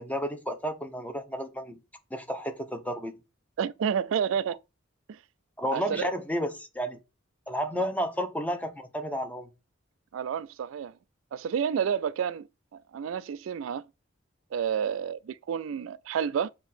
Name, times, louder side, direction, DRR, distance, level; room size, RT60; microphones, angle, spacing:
voice 1, 0.0-1.8 2.1-3.2 5.6-7.0 7.5-9.5, equal, 10° left, 0.8 m, -32 dB
voice 2, 3.6-4.6 5.1-5.2 5.7-6.1 10.1-10.9 11.3-12.5 12.9-13.9 14.5-16.5, right 7 dB, 70° right, 0.3 m, -30 dB
7.1 x 2.9 x 5.6 m
head